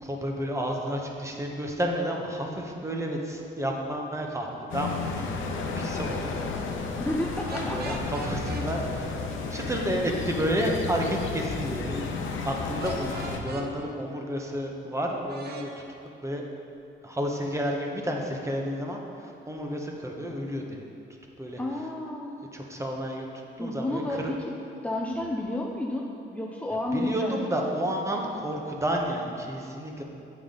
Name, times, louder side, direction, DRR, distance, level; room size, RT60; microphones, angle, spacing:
voice 1, 0.0-6.6 7.6-9.2 9.5-15.7 16.2-16.4 17.0-20.8 21.4-21.6 22.5-23.3 23.6-24.3 26.9-30.0, equal, 15° right, 1 dB, 1.0 m, -31 dB
sound 1, 4.7-13.4, left 4 dB, 80° left, 0.8 m, -33 dB
voice 2, 7.0-8.0 21.6-22.4 23.6-24.6 24.8-27.6, left 1 dB, 5° left, -2 dB, 0.6 m, -31 dB
sound 2, 7.5-8.7 12.8-13.7 15.3-15.7, right 2 dB, 55° right, 0.9 m, -39 dB
8.5 x 5.5 x 3.8 m, 2.7 s
cardioid pair, 90°, 20 cm